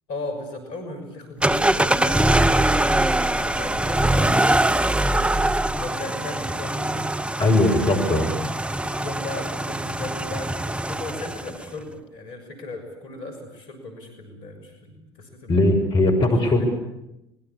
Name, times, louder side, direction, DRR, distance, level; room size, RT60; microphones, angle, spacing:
voice 1, 0.1-2.8 3.1-4.8 5.7-7.1 7.6-7.9 8.7-15.8 16.4-16.7, left 2 dB, 65° left, 6 dB, 6.3 m, -37 dB
sound 1, 1.4-11.6, right 1 dB, 10° right, 1.0 m, -23 dB
voice 2, 7.4-8.3 15.5-16.7, left 1 dB, 40° left, 5 dB, 5.9 m, -19 dB
25.5 x 21.5 x 8.8 m, 0.89 s
figure-of-eight pair, 65°, 13 cm